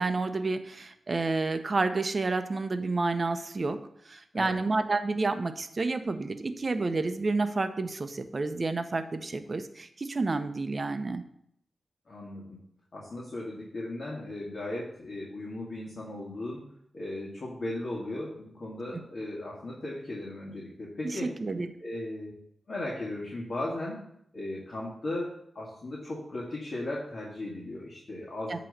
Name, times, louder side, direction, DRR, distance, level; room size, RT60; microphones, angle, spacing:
voice 1, 0.0-3.8 4.1-11.2 18.9-19.0 21.0-21.7 28.5-28.6, right 3 dB, 45° right, 9 dB, 0.7 m, -30 dB
voice 2, 12.1-12.6 12.9-16.6 16.9-21.3 21.8-22.3 22.7-24.0 24.3-28.6, left 1 dB, 50° left, -5 dB, 1.8 m, -37 dB
8.9 x 3.1 x 6.4 m, 0.72 s
cardioid pair, 70°, 0 cm